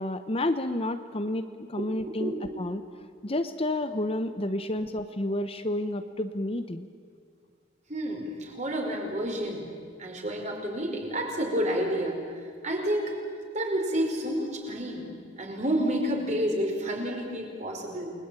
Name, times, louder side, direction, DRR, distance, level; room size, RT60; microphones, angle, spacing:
voice 1, 0.0-2.8 3.2-6.9, left 1 dB, 30° left, 9 dB, 0.9 m, -30 dB
voice 2, 1.8-2.4 7.9-9.7 10.0-12.2 12.6-13.1 13.5-15.1 15.4-18.1, equal, 35° right, 1 dB, 5.2 m, -29 dB
29.0 x 21.5 x 8.9 m, 2.2 s
head